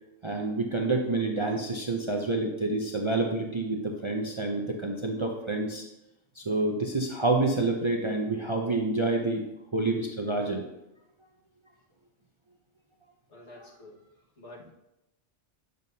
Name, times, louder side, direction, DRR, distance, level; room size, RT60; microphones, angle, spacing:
voice 1, 0.2-5.8 6.4-9.4 9.7-10.6 13.6-13.7, right 2 dB, 35° right, 1 dB, 0.6 m, -28 dB
voice 2, 13.3-14.1 14.4-14.7, left 1 dB, 70° left, -3 dB, 1.9 m, -49 dB
9.1 x 6.5 x 2.7 m, 0.91 s
omnidirectional pair, 1.2 m